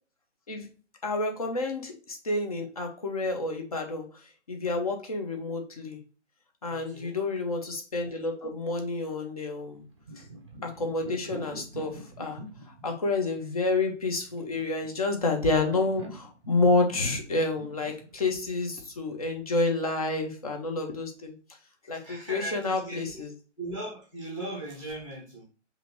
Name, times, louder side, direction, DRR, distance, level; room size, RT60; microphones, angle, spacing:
voice 1, 1.0-4.1 4.5-6.0 6.6-9.8 10.6-12.4 12.8-21.3 21.9-23.3, left 3 dB, 30° left, 4 dB, 0.7 m, -29 dB
voice 2, 6.7-7.2 21.9-23.3 23.6-25.4, right 1 dB, 15° left, -5 dB, 1.0 m, -38 dB
sound 1, 9.7-19.4, equal, 25° right, 0.6 m, -45 dB
5.0 x 2.7 x 3.0 m, 0.38 s
figure-of-eight pair, 140°, 36 cm